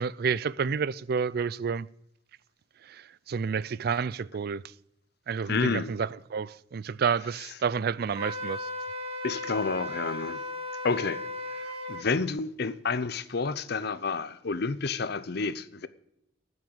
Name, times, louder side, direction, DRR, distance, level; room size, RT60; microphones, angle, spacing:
voice 1, 0.0-1.9 2.8-4.6 5.3-8.7, right 6 dB, 55° right, 0.4 m, -30 dB
voice 2, 5.5-5.9 9.2-10.4 10.8-11.2 11.6-15.9, left 4 dB, 60° left, 0.7 m, -30 dB
Wind instrument woodwind instrument, 8.1-12.1, left 1 dB, 30° right, 2.1 m, -36 dB
14.5 x 6.3 x 8.8 m
head